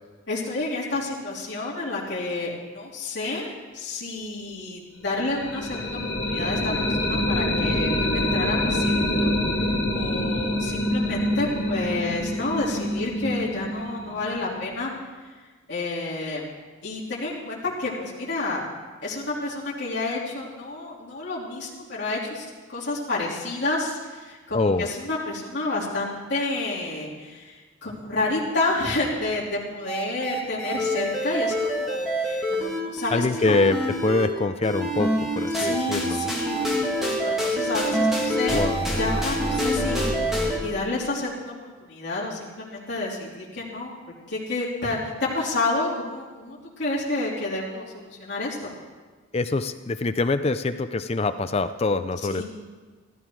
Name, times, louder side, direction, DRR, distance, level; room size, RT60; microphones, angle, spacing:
voice 1, 0.3-9.3 9.9-14.9 15.7-16.5 16.8-18.6 19.0-33.6 35.6-36.7 37.0-38.6 39.0-43.9 44.3-48.7 52.2-52.4, left 2 dB, 55° left, -7 dB, 3.4 m, -30 dB
sound 1, 5.1-14.9, left 1 dB, 75° left, 2.6 m, -26 dB
voice 2, 24.5-24.9 33.1-36.3 38.5-39.0 49.3-52.4, left 3 dB, 30° left, 11 dB, 0.4 m, -25 dB
sound 2, 29.9-34.3 34.6-40.6, equal, ahead, 2.1 m, -26 dB
14.5 x 14.0 x 4.7 m, 1.3 s
head